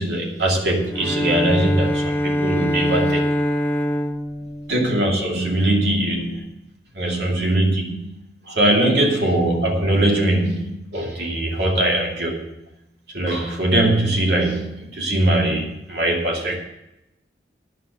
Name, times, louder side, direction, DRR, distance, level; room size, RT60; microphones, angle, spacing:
voice 1, 0.0-3.3 4.7-6.5 7.0-8.1 8.5-12.5 13.1-16.6, right 1 dB, 80° right, 0 dB, 2.4 m, -21 dB
Bowed string instrument, 0.9-5.5, equal, 15° left, 0.6 m, -24 dB
9.5 x 7.1 x 7.7 m, 0.88 s
head